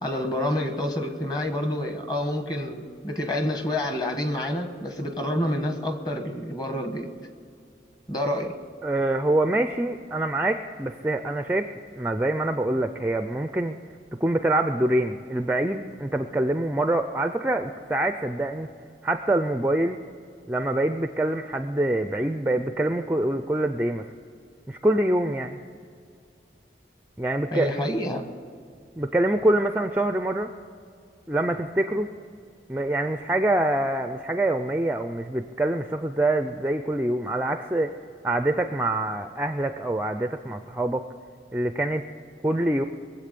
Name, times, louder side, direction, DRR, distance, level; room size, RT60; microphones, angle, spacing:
voice 1, 0.0-7.1 8.1-8.6 27.5-28.2, left 1 dB, 25° left, 6 dB, 1.3 m, -28 dB
voice 2, 8.8-11.7 11.9-13.8 14.2-18.7 19.0-20.0 20.5-24.0 24.7-25.6 27.2-27.8 29.0-30.5 31.3-32.1 32.7-37.9 38.2-41.0 41.5-42.0 42.4-42.8, right 1 dB, 10° right, 8 dB, 0.4 m, -25 dB
22.0 x 8.0 x 6.8 m, 2.3 s
head